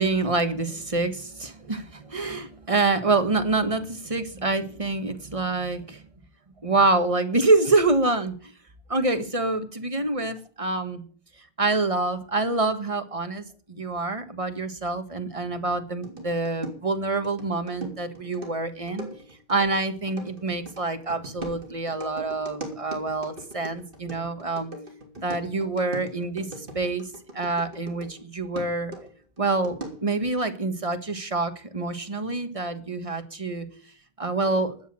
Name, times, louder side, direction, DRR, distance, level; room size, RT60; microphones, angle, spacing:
voice 1, 0.0-6.0 6.6-8.3 8.9-11.0 11.6-19.1 19.5-24.7 25.2-27.1 27.3-28.9 29.4-33.7 34.2-34.7, right 3 dB, 35° right, 8 dB, 1.6 m, -26 dB
sound 1, 16.0-28.2 28.6-30.2, right 1 dB, 55° right, 3.4 m, -40 dB
12.5 x 8.3 x 7.5 m, 0.44 s
omnidirectional pair, 1.1 m